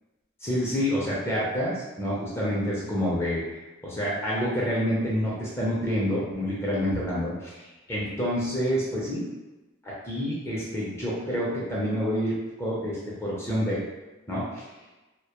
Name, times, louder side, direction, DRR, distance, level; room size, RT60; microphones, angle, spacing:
voice 1, 0.4-3.4 3.8-7.6 7.9-9.3 9.8-13.8 14.3-14.6, equal, 10° left, -6 dB, 0.4 m, -28 dB
2.1 x 2.1 x 2.8 m, 1.1 s
head